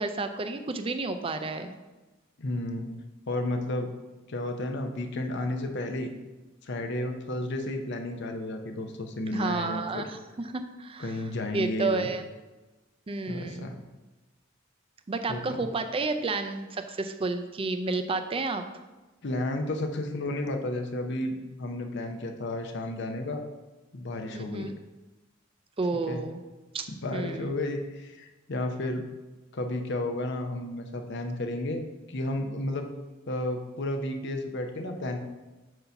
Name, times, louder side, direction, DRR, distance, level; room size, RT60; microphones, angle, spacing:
voice 1, 0.0-1.8 9.3-11.2 11.5-12.2 13.1-13.7 15.1-18.6 24.3-24.7 25.8-26.4 26.7-27.5, right 3 dB, 30° right, 8 dB, 0.4 m, -31 dB
voice 2, 2.4-2.9 3.3-3.9 4.3-6.1 6.6-10.1 11.0-12.1 13.3-13.7 15.3-15.7 19.2-23.4 23.9-24.7 26.1-26.2 26.9-29.0 29.5-32.9 33.3-35.2, left 1 dB, 60° left, 4 dB, 0.7 m, -32 dB
7.7 x 2.8 x 5.8 m, 1.2 s
head